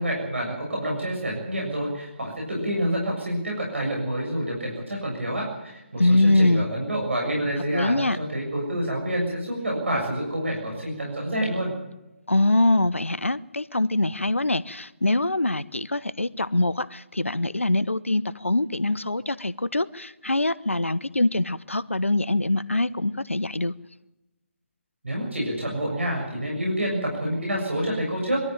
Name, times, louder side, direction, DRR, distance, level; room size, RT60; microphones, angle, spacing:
voice 1, 0.0-11.7 25.0-28.4, right 1 dB, 65° right, -1 dB, 7.0 m, -28 dB
voice 2, 6.0-6.7 7.7-8.2 12.3-23.7, left 2 dB, 80° left, 17 dB, 1.0 m, -23 dB
23.0 x 13.5 x 9.0 m, 0.98 s
figure-of-eight pair, 145°, 7 cm